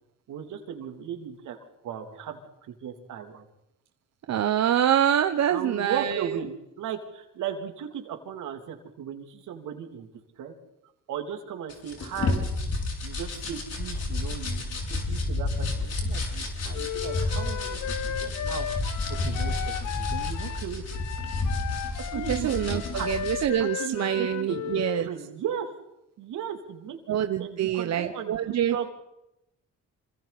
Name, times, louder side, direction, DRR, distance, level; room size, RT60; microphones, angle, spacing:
voice 1, 0.3-1.6 1.8-2.4 2.7-3.4 5.5-10.1 10.4-10.5 11.1-12.5 13.0-14.8 15.1-18.7 19.2-19.5 19.8-20.8 22.0-23.1 23.6-25.7 26.2-28.4 28.7-28.9, right 8 dB, 80° right, 4 dB, 3.2 m, -36 dB
voice 2, 4.3-6.4 22.1-25.1 27.1-28.9, right 10 dB, 60° right, 8 dB, 1.1 m, -26 dB
sound 1, 11.7-23.4, left 2 dB, 55° left, 6.6 m, -30 dB
Wind instrument woodwind instrument, 16.7-25.1, left 10 dB, 75° left, 1.3 m, -35 dB
27.0 x 26.0 x 4.3 m, 0.87 s
cardioid pair, 90°, 30 cm